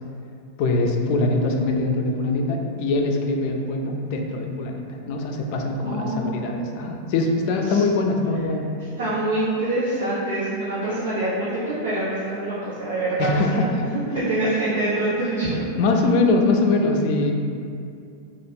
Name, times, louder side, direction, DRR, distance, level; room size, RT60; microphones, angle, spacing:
voice 1, 0.6-8.7 13.2-13.9 15.8-17.3, left 2 dB, 55° left, 2 dB, 0.4 m, -22 dB
voice 2, 5.8-7.0 7.5-7.8 9.0-13.6 13.9-15.6, right 2 dB, 85° right, -13 dB, 0.9 m, -25 dB
2.7 x 2.4 x 3.4 m, 2.4 s
supercardioid pair, 130°, 0 cm